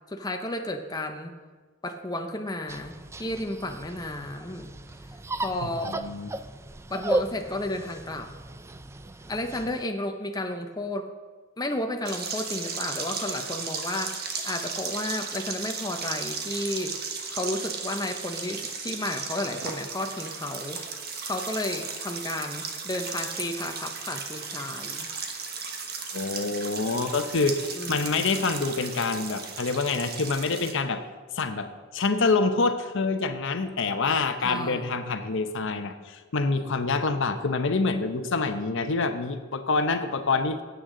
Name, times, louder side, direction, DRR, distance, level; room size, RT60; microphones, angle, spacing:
voice 1, 0.1-1.3 1.8-4.7 5.4-5.9 6.9-8.3 9.3-11.1 11.6-17.0 17.3-25.1 27.7-28.3 34.4-35.0, left 1 dB, 20° left, 4 dB, 0.7 m, -32 dB
sound 1, 2.7-9.8, right 1 dB, 15° right, 0.4 m, -35 dB
voice 2, 5.6-6.3 26.1-31.0 31.3-40.6, left 3 dB, 65° left, 8 dB, 0.8 m, -26 dB
sound 2, 12.1-30.7, right 5 dB, 50° right, 1.3 m, -35 dB
17.5 x 8.1 x 3.8 m, 1.4 s
head